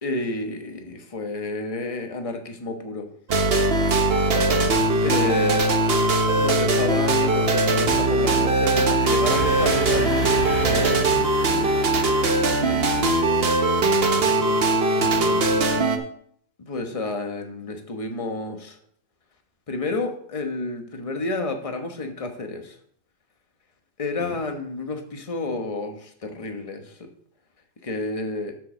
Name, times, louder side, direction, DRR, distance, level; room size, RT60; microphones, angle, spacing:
voice 1, 0.0-3.1 4.1-4.3 5.0-5.7 6.3-11.1 12.5-13.2 16.6-18.8 19.7-22.8 24.0-27.1 27.8-28.5, left 2 dB, 25° left, 5 dB, 1.2 m, -30 dB
sound 1, 3.3-16.0, right 2 dB, 45° right, 1.1 m, -20 dB
voice 2, 4.3-5.0 11.2-11.7 14.0-14.6 15.0-15.9 24.2-24.3, left 8 dB, 80° left, 8 dB, 1.2 m, -36 dB
sound 2, 9.2-13.1, left 2 dB, 60° left, 2.1 m, -33 dB
7.7 x 5.5 x 6.5 m, 0.63 s
omnidirectional pair, 1.5 m